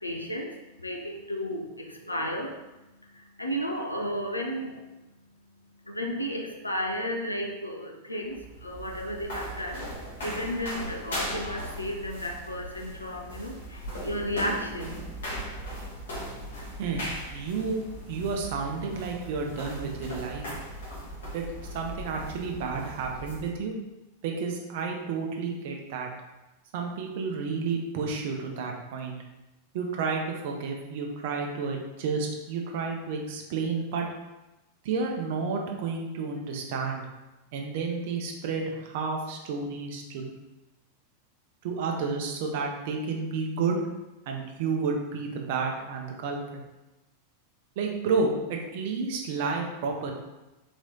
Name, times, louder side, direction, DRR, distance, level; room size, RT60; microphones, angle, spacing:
voice 1, 0.0-2.7 3.0-4.9 5.8-9.9 10.2-15.0, equal, 85° left, 1 dB, 0.6 m, -33 dB
sound 1, 8.2-23.5, equal, 65° left, 1.4 m, -38 dB
voice 2, 17.3-20.5 21.3-21.5 21.7-23.7 24.2-26.1 26.7-29.1 29.7-34.1 34.8-37.0 37.5-40.3 41.6-43.8 44.3-46.6 47.8-50.1, right 4 dB, 50° right, 1 dB, 0.7 m, -31 dB
4.1 x 3.1 x 3.9 m, 1.0 s
figure-of-eight pair, 90°, 0 cm